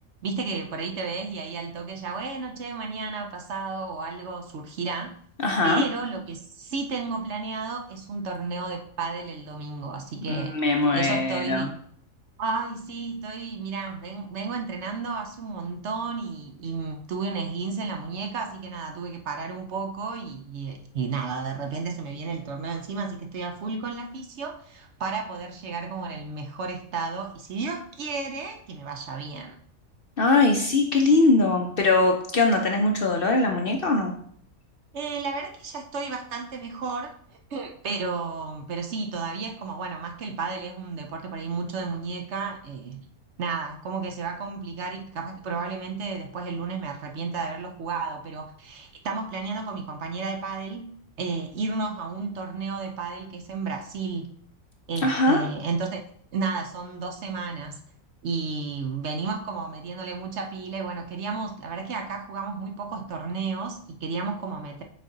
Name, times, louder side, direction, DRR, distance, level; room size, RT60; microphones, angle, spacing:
voice 1, 0.2-5.1 5.6-10.5 10.9-11.7 12.4-29.6 34.9-43.0 43.4-50.9 51.2-54.3 54.9-56.0 56.3-57.8 58.2-64.8, right 4 dB, 60° right, 4 dB, 0.8 m, -32 dB
voice 2, 5.4-5.8 10.3-11.7 30.2-34.1 55.0-55.4, left 2 dB, 55° left, 2 dB, 0.7 m, -21 dB
6.5 x 4.0 x 3.8 m, 0.62 s
omnidirectional pair, 1.5 m